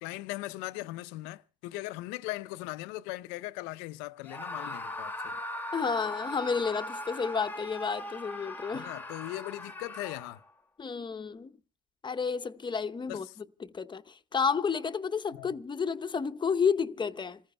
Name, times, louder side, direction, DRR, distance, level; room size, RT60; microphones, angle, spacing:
voice 1, 0.0-5.4 8.7-10.4 13.1-13.3 15.3-15.5, left 18 dB, 85° left, 0.6 m, -39 dB
Screaming, 4.2-10.5, left 1 dB, 10° left, 1.2 m, -39 dB
voice 2, 5.7-8.9 10.8-11.5 12.0-13.3 13.6-17.4, left 6 dB, 25° left, 0.8 m, -31 dB
28.5 x 14.5 x 2.2 m
supercardioid pair, 80°, 18 cm